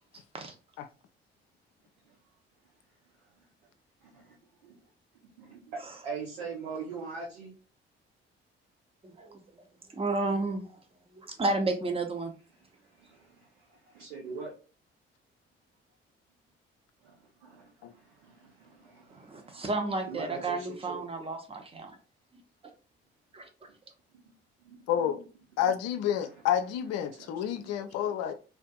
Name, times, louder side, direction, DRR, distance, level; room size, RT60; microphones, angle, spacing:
voice 1, 4.0-4.4 4.6-4.8 5.4-7.5 12.7-14.5 17.0-19.7 20.1-21.0 24.1-24.2 24.6-25.2 25.6-25.7 26.2-26.4 27.1-28.1, right 4 dB, 75° right, 0.7 m, -43 dB
voice 2, 9.0-9.4 9.9-10.7 11.2-12.3 19.1-21.9 23.3-23.5, right 2 dB, 20° right, 0.7 m, -32 dB
voice 3, 24.9-25.2 25.6-28.3, left 9 dB, 55° left, 0.5 m, -29 dB
2.5 x 2.3 x 2.3 m
figure-of-eight pair, 40°, 31 cm